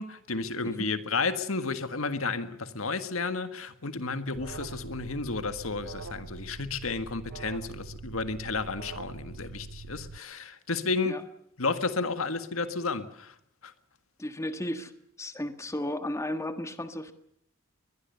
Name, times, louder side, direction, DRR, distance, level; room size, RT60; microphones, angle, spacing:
voice 1, 0.0-11.2 11.6-13.3 13.6-13.7, left 4 dB, 85° left, 1.7 m, -32 dB
Alarm, 4.3-10.2, right 3 dB, 85° right, 0.8 m, -43 dB
voice 2, 14.2-14.9 15.2-17.1, left 1 dB, 15° left, 1.5 m, -34 dB
23.0 x 21.0 x 6.8 m
head